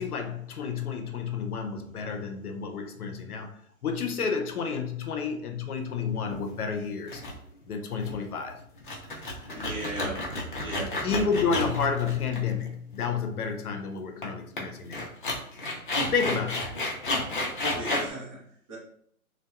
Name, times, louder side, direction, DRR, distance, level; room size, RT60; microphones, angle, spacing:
voice 1, 0.0-3.5 3.8-7.2 7.7-8.6 11.0-15.1 16.1-16.8, left 5 dB, 85° left, 0.6 m, -30 dB
sound 1, 6.3-6.6 7.1-7.3 7.6-7.7 8.0-8.3 8.8-12.7 13.0-13.1 14.2-14.3 14.6-14.7 14.9-18.1, left 2 dB, 35° left, 0.5 m, -31 dB
voice 2, 9.5-11.0 17.7-18.8, right 1 dB, 25° right, 0.6 m, -38 dB
2.7 x 2.1 x 2.3 m
hypercardioid pair, 145°, 44 cm